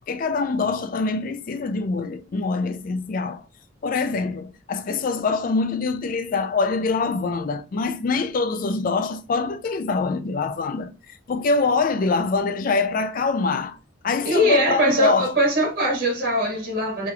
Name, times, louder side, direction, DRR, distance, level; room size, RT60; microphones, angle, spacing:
voice 1, 0.1-3.4 3.8-10.9 11.3-13.8 14.0-15.3, left 4 dB, 50° left, 0.4 m, -24 dB
voice 2, 14.2-17.1, equal, 50° right, 1.7 m, -21 dB
4.9 x 3.1 x 2.3 m
head